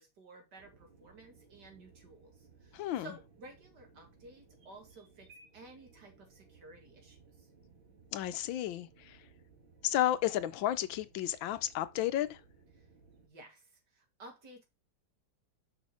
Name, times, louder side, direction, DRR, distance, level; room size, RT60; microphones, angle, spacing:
voice 1, 0.0-7.5 12.8-12.9 13.2-14.6, right 2 dB, 55° right, 2.6 m, -54 dB
sound 1, 0.6-13.3, right 4 dB, 80° right, 3.3 m, -61 dB
voice 2, 2.7-3.1 8.1-9.2 9.8-12.4, left 12 dB, 75° left, 1.3 m, -32 dB
6.2 x 5.6 x 4.9 m
omnidirectional pair, 2.2 m